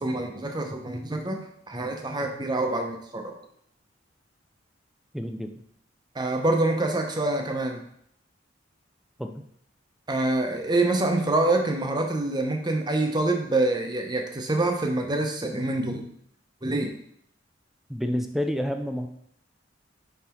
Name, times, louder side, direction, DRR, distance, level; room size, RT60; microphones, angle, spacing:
voice 1, 0.0-3.3 6.1-7.8 10.1-16.1 16.6-17.0, right 2 dB, 25° right, 3 dB, 0.8 m, -26 dB
voice 2, 5.1-5.6 9.2-9.4 17.9-19.1, equal, ahead, 6 dB, 0.4 m, -29 dB
5.6 x 4.1 x 4.4 m, 0.69 s
head